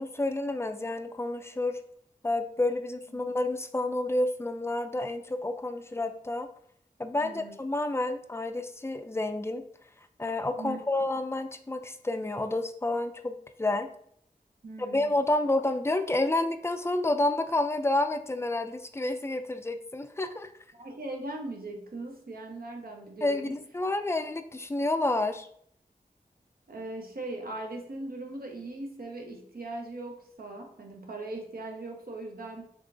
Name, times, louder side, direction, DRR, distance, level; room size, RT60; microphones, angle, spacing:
voice 1, 0.0-1.8 2.2-6.5 7.0-9.7 10.2-13.9 14.8-20.5 23.2-25.5, left 2 dB, 15° left, 8 dB, 0.3 m, -29 dB
voice 2, 7.2-7.6 10.6-10.8 14.6-15.1 20.7-23.5 26.7-32.7, right 2 dB, 65° right, 1 dB, 0.7 m, -39 dB
3.6 x 3.3 x 2.5 m, 0.65 s
wide cardioid pair, 45°, 16 cm